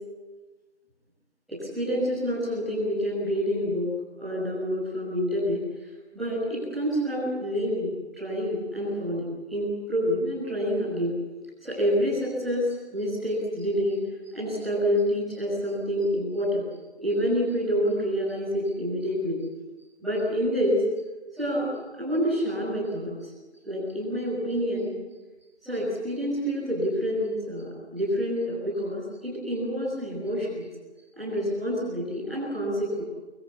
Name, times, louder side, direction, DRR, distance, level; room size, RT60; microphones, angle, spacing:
voice 1, 1.5-3.9 4.2-5.9 6.1-14.0 14.3-16.6 17.0-19.4 20.0-20.8 21.4-21.7 22.0-23.3 23.6-24.9 25.6-30.7 31.1-33.0, equal, ahead, -19 dB, 7.0 m, -28 dB
28.5 x 27.0 x 7.6 m, 1.2 s
figure-of-eight pair, 175°, 34 cm